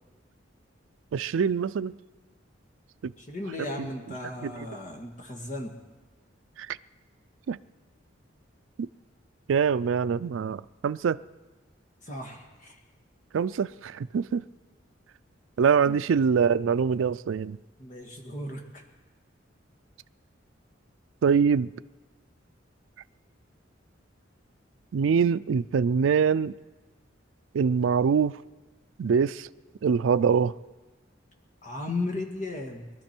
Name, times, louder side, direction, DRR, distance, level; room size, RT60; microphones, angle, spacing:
voice 1, 1.1-1.9 3.0-3.1 4.4-4.7 6.6-6.7 7.5-7.6 8.8-8.9 9.5-11.2 13.3-14.4 15.6-17.6 21.2-21.7 24.9-26.5 27.5-28.4 29.0-29.5 29.8-30.5, right 6 dB, 85° right, 0.4 m, -24 dB
voice 2, 3.2-5.7 12.0-12.8 15.9-16.0 17.8-18.8 31.6-32.9, left 2 dB, 40° left, 1.8 m, -35 dB
22.5 x 12.5 x 4.5 m
head